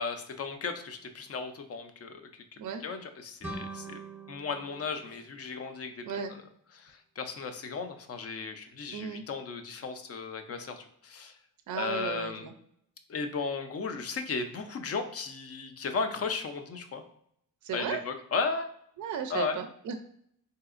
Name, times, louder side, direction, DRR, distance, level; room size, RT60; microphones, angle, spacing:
voice 1, 0.0-2.4 2.8-4.0 4.3-6.4 6.7-11.3 11.7-12.5 13.1-17.0 17.7-18.7 19.3-19.6, left 4 dB, 40° left, 7 dB, 0.5 m, -35 dB
sound 1, 3.4-6.2, right 2 dB, 5° right, 0.7 m, -44 dB
voice 2, 6.0-6.3 8.9-9.2 11.7-12.5 17.6-18.0 19.0-20.0, right 7 dB, 55° right, 7 dB, 0.4 m, -35 dB
4.0 x 2.7 x 2.4 m, 0.69 s
cardioid pair, 90°, 37 cm